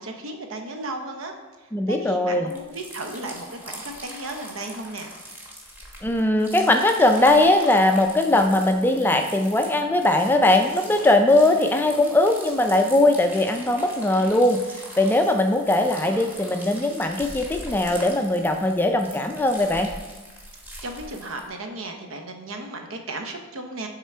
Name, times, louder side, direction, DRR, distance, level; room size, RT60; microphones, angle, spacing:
voice 1, 0.0-5.1 20.8-23.9, right 2 dB, 70° right, 4 dB, 0.7 m, -35 dB
voice 2, 1.7-2.5 6.0-14.6 15.0-19.9, left 1 dB, 10° left, 5 dB, 0.3 m, -20 dB
sound 1, 2.5-21.5, equal, 10° right, 1.1 m, -42 dB
6.7 x 3.6 x 4.3 m, 1.2 s
head